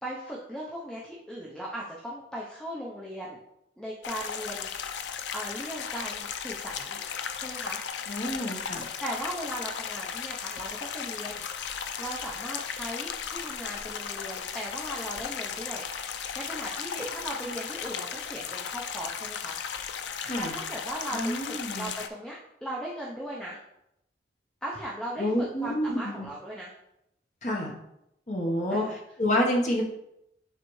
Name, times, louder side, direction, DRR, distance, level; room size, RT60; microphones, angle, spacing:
voice 1, 0.0-3.4 3.8-4.7 5.0-7.0 7.4-7.8 8.2-19.6 20.4-23.6 24.6-26.7 28.7-29.0, right 1 dB, 5° left, -5 dB, 0.6 m, -38 dB
sound 1, 4.0-22.1, left 7 dB, 85° left, 0.4 m, -36 dB
voice 2, 8.1-8.9 20.2-20.5 21.1-21.9 25.2-26.2 27.4-27.7 28.3-28.8 29.2-29.8, left 1 dB, 40° left, -1 dB, 1.1 m, -28 dB
9.1 x 3.3 x 3.1 m, 0.82 s
head